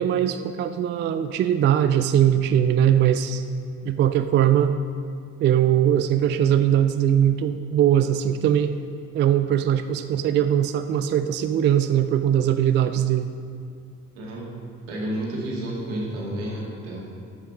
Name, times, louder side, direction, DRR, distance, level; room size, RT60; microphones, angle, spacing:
voice 1, 0.0-3.4 3.8-4.7 5.4-8.7 9.1-13.3, right 10 dB, 25° right, 9 dB, 0.4 m, -20 dB
voice 2, 14.1-14.5 14.9-17.0, right 1 dB, 65° right, -4 dB, 2.3 m, -30 dB
13.5 x 5.7 x 5.0 m, 2.3 s
figure-of-eight pair, 45°, 43 cm